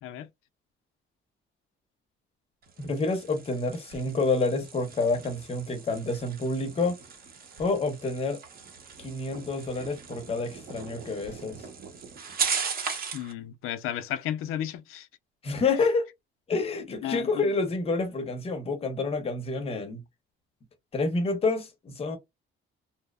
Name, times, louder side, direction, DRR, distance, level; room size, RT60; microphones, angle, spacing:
sound 1, 2.6-13.3, right 6 dB, 45° right, 0.7 m, -38 dB
voice 1, 2.8-7.0 7.6-8.4 9.0-11.7 15.4-16.1 16.5-20.0 20.9-22.2, left 3 dB, 30° left, 0.6 m, -28 dB
voice 2, 13.1-15.1 17.0-17.5, left 11 dB, 80° left, 0.4 m, -33 dB
2.8 x 2.0 x 2.2 m
cardioid pair, 175°, 21 cm